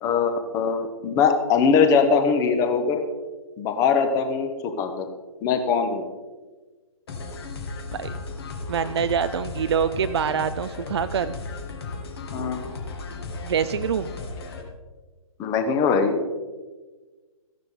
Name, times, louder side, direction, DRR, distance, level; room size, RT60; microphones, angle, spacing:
voice 1, 0.0-3.0 3.6-5.1 5.4-6.1 12.3-12.6 15.4-16.2, left 5 dB, 15° left, 7 dB, 1.1 m, -21 dB
sound 1, 7.1-14.6, left 3 dB, 45° left, 2.1 m, -35 dB
voice 2, 8.7-11.3 13.4-14.1, right 7 dB, 45° right, 11 dB, 0.5 m, -25 dB
15.0 x 11.0 x 3.8 m, 1.3 s
figure-of-eight pair, 135°, 18 cm